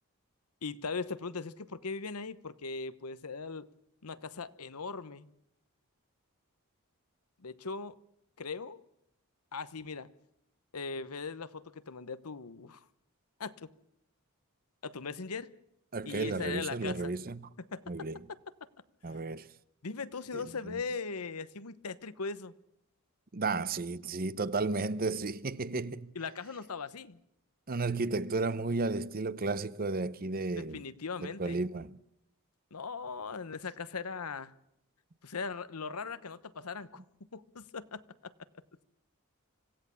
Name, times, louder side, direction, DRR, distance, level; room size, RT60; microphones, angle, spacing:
voice 1, 0.6-3.7 4.0-5.3 7.4-8.0 8.4-8.8 9.5-10.1 10.7-12.8 13.4-13.7 14.8-15.5 16.1-17.1 17.7-17.8 19.8-22.5 26.1-27.2 30.6-31.6 32.7-34.5 35.2-37.0 37.3-38.6, left 4 dB, 85° left, 1.0 m, -39 dB
voice 2, 15.9-17.5 17.9-18.2 19.0-19.5 20.3-20.8 23.3-26.1 27.7-30.8 31.2-32.0, right 3 dB, 40° right, 0.7 m, -33 dB
26.0 x 16.5 x 7.0 m
head